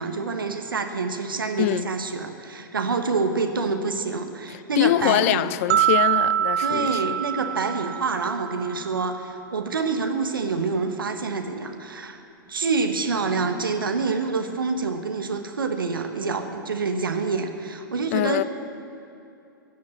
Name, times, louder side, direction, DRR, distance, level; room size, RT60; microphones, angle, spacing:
voice 1, 0.0-5.4 6.6-12.2 12.5-18.4, right 4 dB, 70° right, 1.0 m, -27 dB
voice 2, 4.5-7.1 18.1-18.4, left 15 dB, 40° left, 0.3 m, -24 dB
sound 1, 5.7-8.8, right 11 dB, 45° right, 0.7 m, -24 dB
16.0 x 6.3 x 8.3 m
figure-of-eight pair, 105°, 12 cm